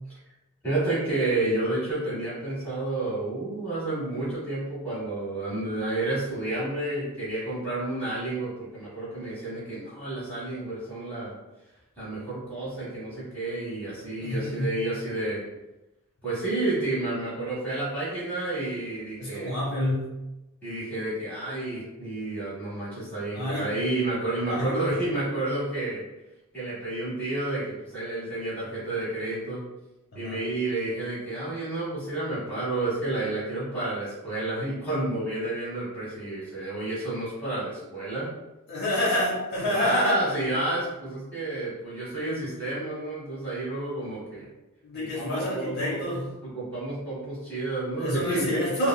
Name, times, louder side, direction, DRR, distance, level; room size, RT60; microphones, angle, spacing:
voice 1, 0.6-11.3 12.0-15.4 16.2-19.5 20.6-26.0 26.5-29.6 30.1-38.3 39.6-44.5 45.0-46.0 46.4-48.4 48.8-48.9, right 2 dB, 10° left, -10 dB, 1.4 m, -30 dB
voice 2, 14.2-14.8 19.2-20.1 23.3-23.7 24.5-24.8 30.2-30.4 38.7-40.2 44.8-46.3 47.9-48.9, left 1 dB, 50° left, -7 dB, 0.8 m, -28 dB
3.5 x 2.3 x 2.2 m, 1.0 s
head